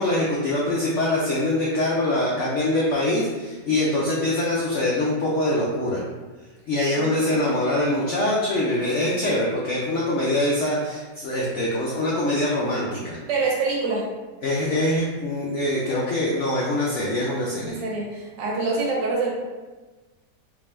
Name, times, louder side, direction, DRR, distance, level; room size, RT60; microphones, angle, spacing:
voice 1, 0.0-6.0 6.7-13.2 14.4-17.8, left 1 dB, 75° left, -5 dB, 0.6 m, -24 dB
voice 2, 7.0-7.6 13.3-14.1 17.6-19.3, right 3 dB, 80° right, -3 dB, 1.5 m, -26 dB
3.6 x 2.7 x 3.2 m, 1.3 s
omnidirectional pair, 1.9 m